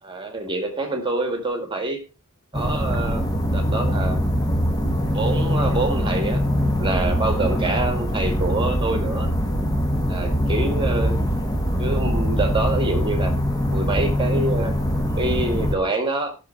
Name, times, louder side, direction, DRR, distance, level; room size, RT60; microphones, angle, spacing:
voice 1, 0.0-2.0 2.5-4.2 5.1-6.4 6.8-9.3 10.1-11.3 11.8-13.3 13.7-14.8 15.2-16.3, right 2 dB, 20° right, 5 dB, 1.9 m, -26 dB
sound 1, 2.5-15.7, equal, 15° left, 1.6 m, -22 dB
14.0 x 6.6 x 4.5 m, 0.33 s
head